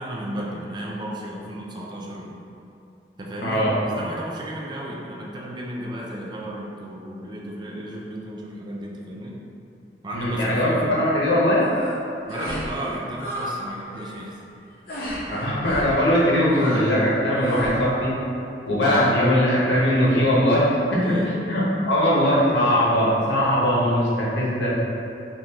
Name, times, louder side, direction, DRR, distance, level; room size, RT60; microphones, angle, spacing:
voice 1, 0.0-2.4 3.2-9.4 10.0-11.0 12.3-14.4 21.0-21.3, right 1 dB, 25° right, -3 dB, 0.4 m, -33 dB
voice 2, 3.4-3.8 10.1-11.7 15.3-18.1 18.7-21.2 21.4-24.8, equal, 85° left, -7 dB, 0.9 m, -20 dB
sound 1, 11.6-12.0 12.3-12.7 12.9-13.5 13.8-14.1 14.9-15.2 15.6-15.9 16.5-17.0 17.4-17.8, equal, 55° left, 0.8 m, -33 dB
3.5 x 2.5 x 2.9 m, 2.6 s
head